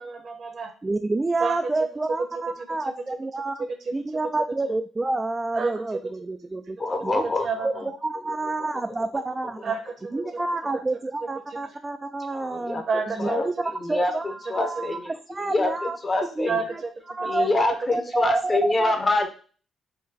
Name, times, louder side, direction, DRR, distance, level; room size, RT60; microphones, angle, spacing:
voice 1, 0.0-0.7 1.4-1.6 5.6-5.7 7.4-7.9 9.6-9.9 12.9-13.3 16.4-16.9 17.2-17.5, right 4 dB, 50° right, 5 dB, 1.0 m, -29 dB
voice 2, 0.8-3.6 3.9-6.8 7.0-7.2 7.6-9.7 10.1-12.8 13.2-15.0 15.3-16.0 16.4-16.8 17.1-18.5 18.8-18.9, right 2 dB, 20° right, 6 dB, 0.3 m, -29 dB
voice 3, 6.8-7.8 10.6-10.7 12.3-12.8 13.2-13.5 13.8-14.1 14.5-15.7 16.0-16.6 17.2-19.3, left 2 dB, 30° left, 6 dB, 0.8 m, -25 dB
3.9 x 2.2 x 4.0 m, 0.39 s
cardioid pair, 90°, 0 cm